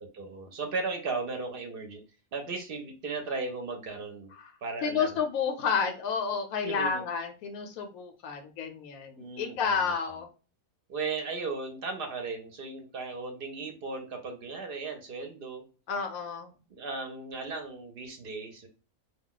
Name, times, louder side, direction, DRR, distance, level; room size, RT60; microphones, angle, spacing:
voice 1, 0.0-2.0 2.3-4.3 4.6-5.2 6.6-7.0 9.2-9.9 10.9-15.6 16.7-18.7, right 4 dB, 55° right, 4 dB, 0.6 m, -36 dB
voice 2, 4.8-10.3 15.9-16.6, left 6 dB, 90° left, 4 dB, 1.0 m, -31 dB
2.3 x 2.2 x 3.7 m, 0.35 s
omnidirectional pair, 1.4 m